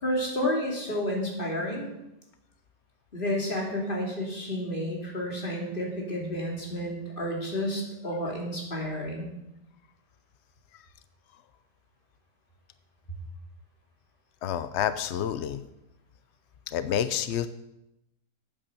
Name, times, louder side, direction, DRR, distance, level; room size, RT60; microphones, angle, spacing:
voice 1, 0.0-1.9 3.1-9.3, equal, 30° left, -1 dB, 2.9 m, -31 dB
voice 2, 14.4-15.7 16.7-17.5, left 9 dB, 80° left, 12 dB, 0.6 m, -29 dB
8.8 x 8.7 x 6.8 m, 0.89 s
omnidirectional pair, 1.8 m